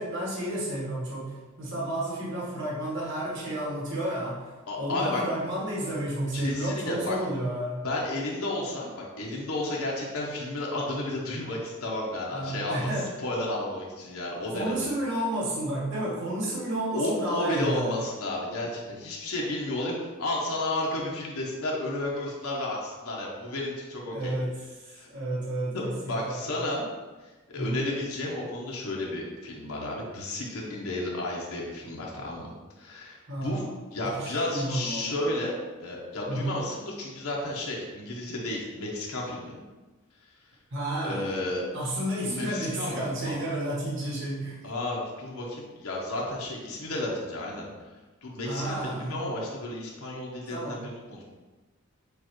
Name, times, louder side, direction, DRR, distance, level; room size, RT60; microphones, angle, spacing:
voice 1, 0.0-7.9 12.3-13.1 14.5-18.0 24.1-26.6 27.5-27.8 33.3-33.7 34.0-35.1 36.3-36.6 40.7-41.3 41.7-44.6 48.4-49.3 50.5-50.9, right 1 dB, 60° right, -5 dB, 1.2 m, -31 dB
voice 2, 4.7-5.2 6.3-7.2 7.8-12.9 13.2-14.9 16.9-24.3 24.9-25.1 25.7-26.8 27.5-32.5 32.8-33.6 33.9-39.6 41.0-41.6 42.2-43.3 44.6-47.7 48.2-51.2, left 1 dB, 85° left, -3 dB, 1.0 m, -32 dB
6.7 x 2.4 x 3.1 m, 1.2 s
head